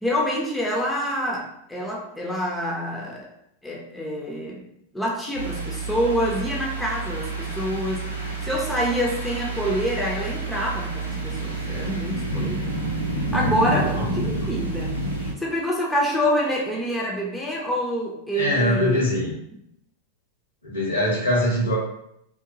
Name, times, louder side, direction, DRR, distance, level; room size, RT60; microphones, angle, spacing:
voice 1, 0.0-3.3 3.6-4.7 4.9-12.7 13.1-19.0, equal, 5° left, -3 dB, 0.6 m, -27 dB
sound 1, 5.3-15.3, right 2 dB, 90° right, 0.6 m, -29 dB
voice 2, 18.3-19.3 20.6-21.8, left 1 dB, 75° left, -5 dB, 1.2 m, -22 dB
2.8 x 2.2 x 2.6 m, 0.77 s
figure-of-eight pair, 90°, 0 cm